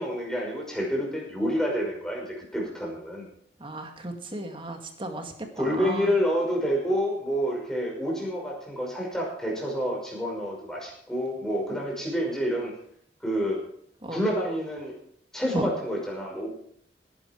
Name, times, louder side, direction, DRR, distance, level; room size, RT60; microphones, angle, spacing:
voice 1, 0.0-3.3 5.5-12.7 13.2-13.6 14.1-14.9 15.3-16.5, equal, 5° left, -2 dB, 5.6 m, -28 dB
voice 2, 3.6-6.1 14.0-14.2 15.5-15.7, right 1 dB, 30° right, 4 dB, 2.1 m, -34 dB
18.0 x 11.0 x 4.6 m, 0.65 s
head